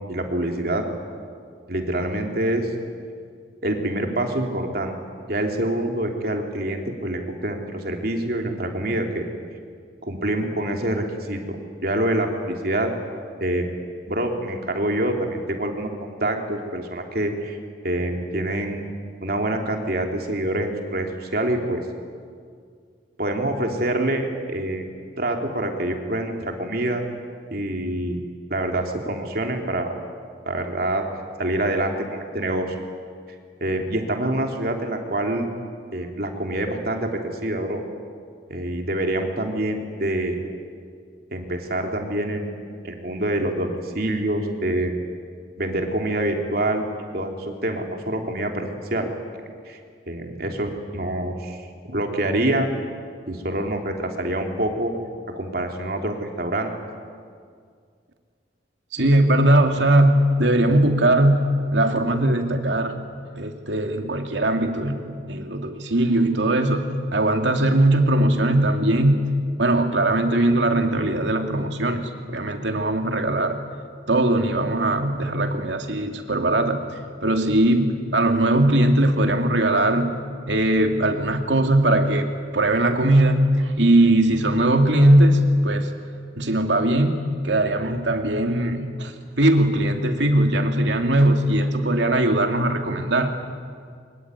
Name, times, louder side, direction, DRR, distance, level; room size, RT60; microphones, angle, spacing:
voice 1, 0.1-0.8 1.7-2.7 3.6-4.9 5.3-9.2 10.1-11.6 11.8-12.9 13.4-13.7 14.1-17.6 17.8-18.8 19.2-21.8 23.2-24.9 25.2-27.0 27.5-28.2 28.5-29.9 30.4-31.0 31.4-32.8 33.6-35.5 35.9-37.8 38.5-40.4 41.3-42.6 42.8-44.9 45.6-46.8 47.1-49.1 49.7-49.8 50.1-52.7 53.3-54.9 55.3-56.7, right 1 dB, 55° right, 3 dB, 3.3 m, -26 dB
voice 2, 58.9-61.4 61.7-63.0 63.3-69.2 69.6-73.6 74.1-76.8 77.2-80.1 80.5-85.9 86.4-93.3, right 1 dB, 90° right, 4 dB, 2.7 m, -20 dB
24.0 x 23.0 x 9.7 m, 2.1 s
head